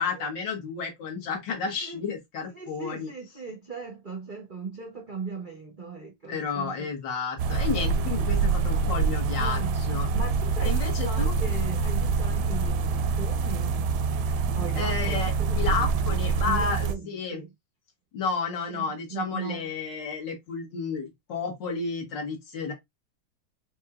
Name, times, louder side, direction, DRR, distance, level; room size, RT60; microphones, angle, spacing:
voice 1, 0.0-3.1 6.3-9.6 9.9-10.1 10.6-11.3 14.8-17.4 18.1-22.7, left 5 dB, 65° left, 2.0 m, -31 dB
voice 2, 2.5-6.9 9.4-9.8 10.1-13.9 14.5-16.2 16.4-17.5 18.7-18.8 19.1-19.7, right 4 dB, 55° right, 0.5 m, -38 dB
sound 1, 7.4-16.9, right 4 dB, 75° right, 1.0 m, -26 dB
5.3 x 3.0 x 2.3 m
omnidirectional pair, 2.1 m